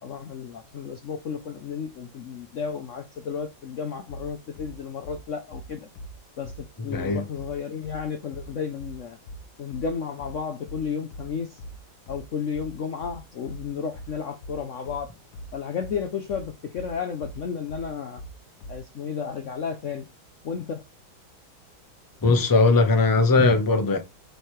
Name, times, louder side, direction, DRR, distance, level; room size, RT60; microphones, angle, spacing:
voice 1, 0.0-5.9 6.4-6.5 6.8-9.2 9.6-11.6 12.1-15.1 15.5-18.2 18.7-20.1 20.4-20.8, left 6 dB, 90° left, 0.6 m, -32 dB
sound 1, 4.1-18.9, right 1 dB, 60° left, 1.4 m, -42 dB
voice 2, 6.9-7.2 22.2-24.0, left 3 dB, 25° left, 0.4 m, -19 dB
7.9 x 3.3 x 4.5 m
omnidirectional pair, 2.2 m